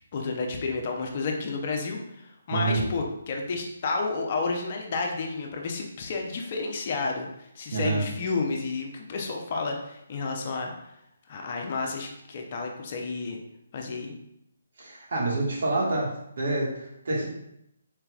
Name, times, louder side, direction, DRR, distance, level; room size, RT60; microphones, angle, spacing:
voice 1, 0.1-10.7 11.3-13.4 13.7-14.1, left 4 dB, 40° left, 2 dB, 0.7 m, -31 dB
voice 2, 2.5-2.8 7.7-8.0 14.8-16.1 16.4-17.3, right 2 dB, 65° right, -4 dB, 1.7 m, -27 dB
4.4 x 4.0 x 2.4 m, 0.79 s
figure-of-eight pair, 145°, 0 cm